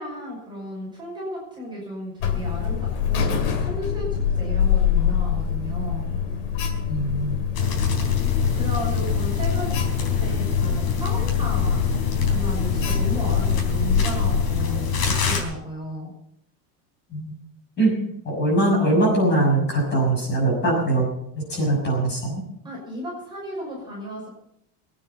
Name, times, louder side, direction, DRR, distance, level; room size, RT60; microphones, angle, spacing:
voice 1, 0.0-6.1 8.5-16.1 22.6-24.3, equal, 10° right, -5 dB, 5.6 m, -34 dB
Alarm, 2.2-14.6, left 8 dB, 65° left, 2.7 m, -25 dB
voice 2, 6.9-7.4 17.1-17.3 17.8-18.0 18.2-21.1 21.4-22.4, right 1 dB, 20° left, -2 dB, 6.3 m, -21 dB
sound 1, 7.5-15.4, left 6 dB, 45° left, 3.8 m, -24 dB
22.0 x 9.6 x 5.6 m, 0.76 s
cardioid pair, 180°, 47 cm